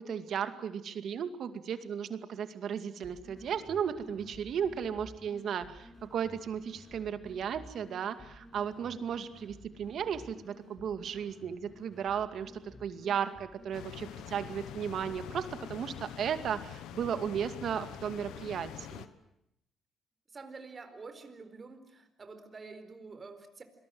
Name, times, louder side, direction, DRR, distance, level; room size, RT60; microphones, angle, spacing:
voice 1, 0.0-19.1, right 8 dB, 65° right, 10 dB, 2.3 m, -35 dB
sound 1, 3.0-19.1, left 1 dB, 25° left, 7.9 m, -54 dB
sound 2, 13.7-19.1, left 12 dB, 90° left, 1.2 m, -45 dB
voice 2, 20.3-23.6, right 4 dB, 35° right, 9 dB, 4.5 m, -48 dB
27.5 x 22.0 x 7.8 m, 0.77 s
cardioid pair, 90°, 0 cm